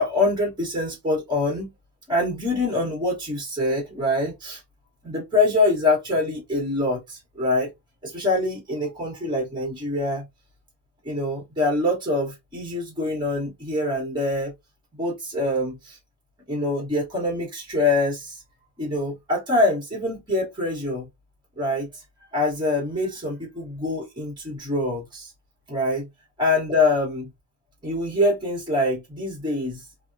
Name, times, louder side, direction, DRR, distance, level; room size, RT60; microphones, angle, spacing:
voice 1, 0.0-1.7 2.1-4.6 5.0-7.7 8.0-10.2 11.0-14.5 15.0-16.0 16.5-18.4 18.8-21.1 21.6-22.0 22.3-25.3 25.7-26.1 26.4-27.3 27.8-29.9, left 2 dB, 10° right, 1.2 m, -24 dB
3.4 x 2.1 x 2.6 m
cardioid pair, 165°, 39 cm